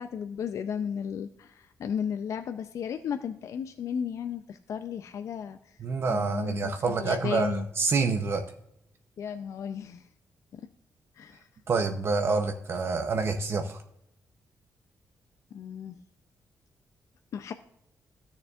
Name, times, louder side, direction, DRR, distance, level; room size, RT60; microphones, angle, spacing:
voice 1, 0.0-5.6 6.1-7.7 9.2-10.0 10.5-10.7 11.2-11.5 15.5-16.0 17.3-17.5, left 7 dB, 60° left, 8 dB, 0.4 m, -34 dB
voice 2, 5.8-8.4 11.7-13.8, right 4 dB, 45° right, 6 dB, 0.6 m, -27 dB
15.5 x 6.7 x 2.4 m, 0.80 s
wide cardioid pair, 150°, 6 cm